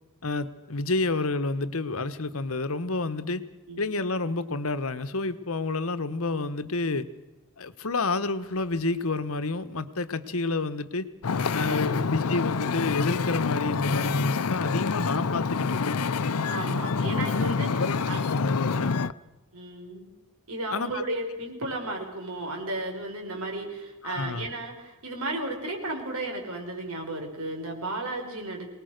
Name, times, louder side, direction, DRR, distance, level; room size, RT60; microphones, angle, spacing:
voice 1, 0.2-3.5 3.8-7.1 7.6-11.1 11.5-15.8 17.7-19.0 20.7-21.0 24.0-24.5, left 3 dB, 65° left, 12 dB, 1.2 m, -29 dB
Wind / Ocean, 11.2-19.1, left 5 dB, 85° left, 0.6 m, -27 dB
voice 2, 16.5-18.2 19.5-20.1 20.5-28.7, right 2 dB, 75° right, 2 dB, 5.6 m, -34 dB
25.0 x 19.5 x 6.6 m, 1.1 s
head